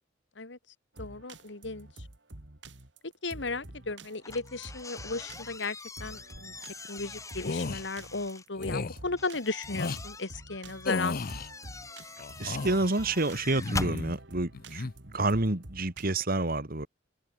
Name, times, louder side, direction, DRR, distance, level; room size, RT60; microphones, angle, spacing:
voice 1, 1.0-1.9 3.2-6.5 6.9-11.2, left 3 dB, 70° left, 2.0 m, -35 dB
sound 1, 1.0-16.1, right 2 dB, 70° right, 3.0 m, -48 dB
sound 2, 4.2-8.5 9.2-14.0, left 3 dB, 15° left, 1.9 m, -42 dB
sound 3, 7.4-7.8 8.6-9.0 9.7-10.0 10.8-11.5 12.2-12.9 13.5-14.2 14.5-14.9, left 3 dB, 50° left, 0.7 m, -34 dB
voice 2, 12.4-16.9, right 2 dB, 50° right, 2.3 m, -29 dB
head